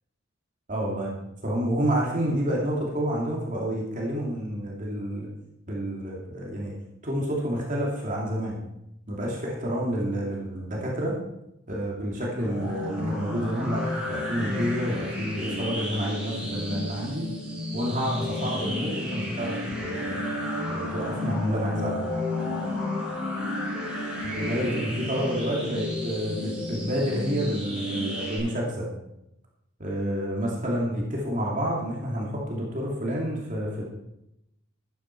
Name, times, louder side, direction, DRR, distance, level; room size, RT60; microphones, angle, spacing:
voice 1, 0.7-1.1 1.4-5.3 5.7-6.7 7.0-8.6 9.1-11.2 11.7-17.3 17.7-20.2 20.7-22.1 24.2-28.9 29.8-33.8, equal, 40° right, -3 dB, 2.6 m, -29 dB
sound 1, 12.4-28.4, left 1 dB, 5° right, 5.3 m, -32 dB
13.0 x 9.5 x 4.6 m, 0.84 s
head